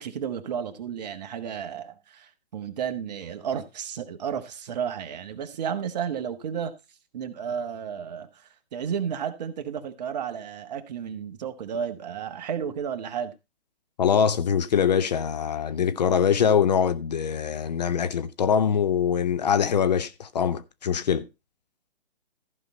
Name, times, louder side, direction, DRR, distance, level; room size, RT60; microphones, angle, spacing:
voice 1, 0.0-6.7 7.1-8.3 8.7-13.3, right 8 dB, 40° right, 1.2 m, -32 dB
voice 2, 14.0-21.3, left 7 dB, 40° left, 0.6 m, -23 dB
14.0 x 5.5 x 4.3 m
hypercardioid pair, 150°, 32 cm